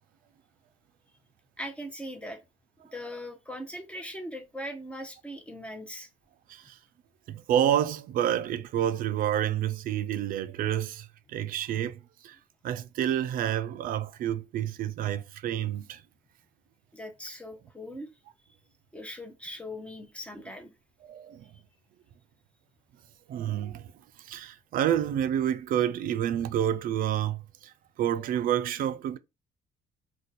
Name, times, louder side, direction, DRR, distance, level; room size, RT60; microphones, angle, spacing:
voice 1, 1.6-2.4 2.9-6.1 16.9-18.1 18.9-20.7, equal, 5° left, 0.6 m, -40 dB
voice 2, 7.3-12.4 12.6-16.0 21.1-21.4 23.3-23.9 24.2-29.2, right 10 dB, 55° right, 0.4 m, -29 dB
2.5 x 2.2 x 4.0 m
cardioid pair, 110°, 17 cm